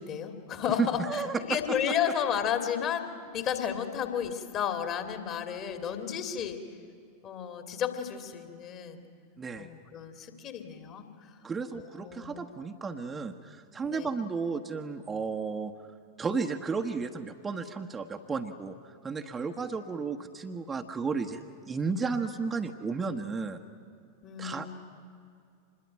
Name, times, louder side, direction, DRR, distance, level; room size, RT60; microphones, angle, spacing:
voice 1, 0.0-6.6 7.2-9.0 9.6-11.0 11.7-12.6 13.8-14.1 24.2-24.7, left 8 dB, 35° left, 7 dB, 2.4 m, -33 dB
voice 2, 0.8-1.6 9.4-9.7 11.4-15.9 16.2-21.4 21.7-23.6 24.4-24.7, right 4 dB, 15° right, 4 dB, 1.2 m, -33 dB
26.0 x 21.5 x 9.0 m, 2.4 s
figure-of-eight pair, 90°, 0 cm